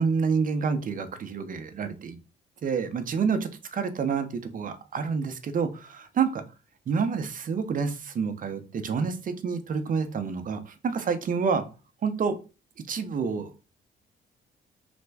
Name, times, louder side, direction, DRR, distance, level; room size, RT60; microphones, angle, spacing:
voice 1, 0.0-2.2 2.6-6.4 6.9-11.6 12.0-12.4 12.8-13.5, right 5 dB, 45° right, 9 dB, 0.5 m, -28 dB
3.3 x 2.1 x 3.3 m, 0.32 s
cardioid pair, 90°, 20 cm